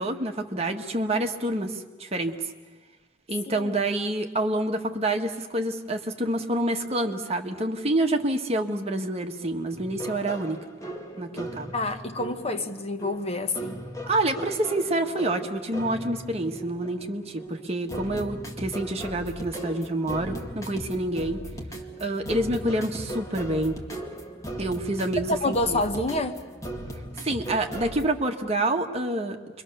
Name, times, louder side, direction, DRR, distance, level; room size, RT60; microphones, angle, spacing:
voice 1, 0.0-2.4 3.3-10.6 11.2-11.7 14.1-21.4 22.0-23.8 24.6-25.8 27.2-29.4, right 1 dB, 35° right, 1.5 m, -27 dB
voice 2, 3.5-3.8 11.7-13.8 25.3-26.4, left 2 dB, 35° left, 1.2 m, -28 dB
sound 1, 9.7-28.0, right 1 dB, 15° left, 2.1 m, -38 dB
29.0 x 23.5 x 6.8 m
head